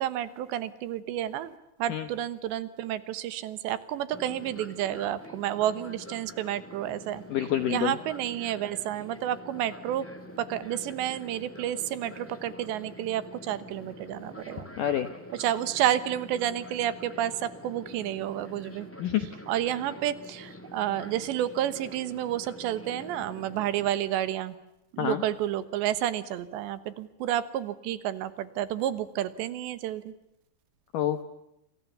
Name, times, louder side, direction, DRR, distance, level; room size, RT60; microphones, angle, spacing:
voice 1, 0.0-1.5 1.8-7.2 7.7-10.0 10.4-14.7 15.4-18.9 19.5-24.6 24.9-30.1, right 11 dB, 75° right, 15 dB, 3.3 m, -30 dB
Fixed-wing aircraft airplane, 4.1-23.9, left 1 dB, 20° left, 0.3 m, -46 dB
voice 2, 7.3-7.9 14.8-15.1 19.0-19.3 25.0-25.2 30.9-31.2, left 11 dB, 75° left, 11 dB, 2.0 m, -27 dB
28.0 x 27.0 x 6.9 m, 0.86 s
omnidirectional pair, 5.3 m